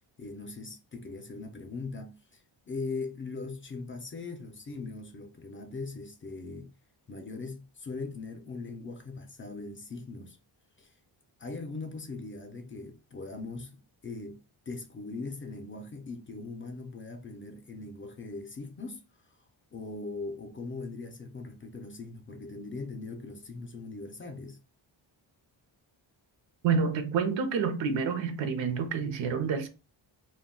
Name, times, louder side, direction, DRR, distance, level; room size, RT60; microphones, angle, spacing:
voice 1, 0.2-2.4 2.7-6.7 7.1-10.4 10.8-10.9 11.4-14.4 14.7-19.0 19.7-24.6, left 3 dB, 30° left, 0.4 m, -40 dB
voice 2, 26.6-29.7, right 5 dB, 80° right, 0.6 m, -28 dB
2.2 x 2.1 x 3.5 m
wide cardioid pair, 135°, 45 cm